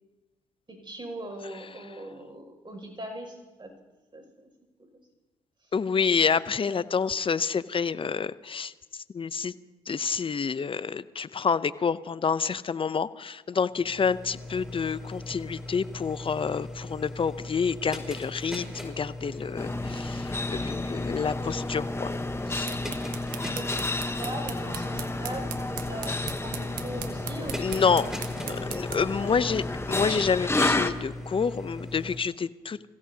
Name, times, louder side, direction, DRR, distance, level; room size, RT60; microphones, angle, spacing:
voice 1, 0.7-3.7 4.1-4.5 4.8-4.9 6.5-6.8 23.5-23.8 24.2-26.1 26.4-29.5, right 1 dB, 35° right, 3 dB, 6.2 m, -40 dB
voice 2, 5.7-9.5 9.9-22.1 22.5-22.7 26.1-26.2 27.6-28.1 28.5-32.9, left 6 dB, 35° left, 16 dB, 0.7 m, -28 dB
sound 1, 13.7-32.2, left 1 dB, 5° right, 4.9 m, -39 dB
sound 2, 19.6-30.9, left 2 dB, 15° left, 1.1 m, -32 dB
sound 3, 22.6-29.2, right 9 dB, 75° right, 1.2 m, -41 dB
28.0 x 16.0 x 2.8 m, 1.1 s
hypercardioid pair, 50°, 15 cm